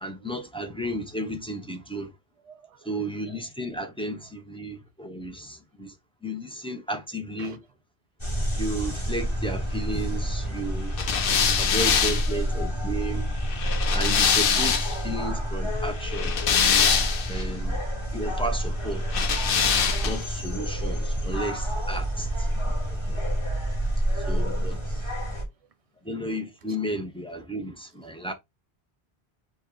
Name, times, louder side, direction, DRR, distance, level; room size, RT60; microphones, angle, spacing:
voice 1, 0.0-2.1 2.8-5.9 6.2-7.6 8.6-10.9 11.6-13.3 13.9-16.3 17.3-17.8 18.1-19.2 20.0-22.5 22.9-23.2 24.3-24.8 26.0-28.3, right 1 dB, 10° left, 0.4 m, -33 dB
voice 2, 2.5-2.8 7.4-7.6 11.0-11.7 13.3-13.4 16.3-16.4 17.3-17.4, right 7 dB, 50° right, 0.4 m, -50 dB
sound 1, 8.2-25.4, equal, 30° left, 1.5 m, -28 dB
sound 2, 11.0-15.1 16.0-17.4 19.1-20.3, left 7 dB, 65° left, 0.8 m, -24 dB
4.5 x 2.2 x 3.6 m
omnidirectional pair, 1.0 m